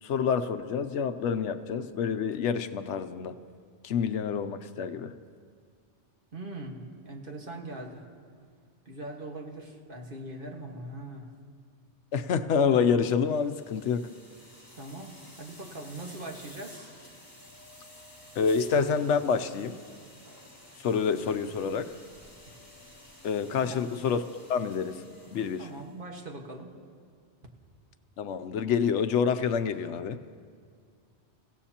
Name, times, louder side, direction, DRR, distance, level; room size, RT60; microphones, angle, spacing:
voice 1, 0.0-3.4 3.8-5.1 12.1-14.1 18.4-19.8 20.8-21.9 23.2-24.2 24.5-25.0 25.3-25.7 28.2-30.2, left 6 dB, 80° left, 10 dB, 1.0 m, -27 dB
voice 2, 6.3-8.0 8.8-11.3 14.4-16.9 23.6-23.9 25.6-26.7, right 2 dB, 50° right, 1 dB, 1.7 m, -41 dB
sound 1, 13.2-25.9, left 1 dB, 35° left, 3.4 m, -52 dB
29.0 x 16.5 x 2.9 m, 2.1 s
omnidirectional pair, 1.2 m